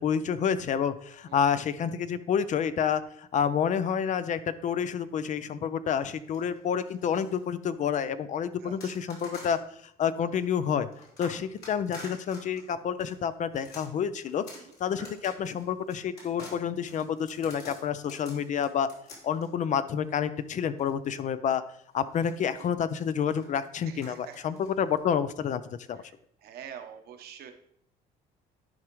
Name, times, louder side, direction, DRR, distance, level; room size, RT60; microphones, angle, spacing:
voice 1, 0.0-9.6 10.0-10.9 11.2-14.4 14.8-18.9 19.2-21.6 21.9-25.6 25.9-26.0, left 7 dB, 45° left, 14 dB, 0.5 m, -29 dB
voice 2, 1.3-1.6 8.6-9.0 14.5-14.6 22.6-22.7 23.9-24.5 26.0-26.1 26.4-27.5, right 8 dB, 70° right, 6 dB, 1.0 m, -46 dB
sound 1, 6.2-7.4 8.8-9.7 10.4-20.9 22.0-25.0, left 2 dB, 65° left, 3.3 m, -49 dB
10.5 x 4.8 x 3.0 m, 0.69 s
cardioid pair, 110°, 17 cm